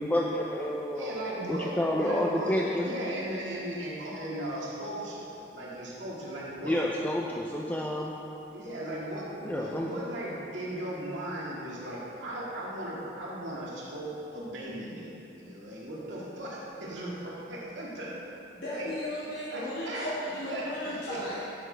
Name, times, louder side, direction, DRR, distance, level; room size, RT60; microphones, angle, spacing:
voice 1, 0.0-1.1 1.5-2.9 6.6-8.1 9.4-9.9, left 1 dB, 10° left, -2 dB, 0.5 m, -29 dB
voice 2, 1.0-1.7 1.9-6.7 8.5-18.1 18.7-18.8 19.5-20.0 20.5-20.6 21.1-21.2, right 1 dB, 85° right, -6 dB, 2.0 m, -37 dB
voice 3, 18.5-21.4, left 1 dB, 65° left, -10 dB, 2.0 m, -35 dB
11.5 x 8.6 x 3.4 m, 2.8 s
head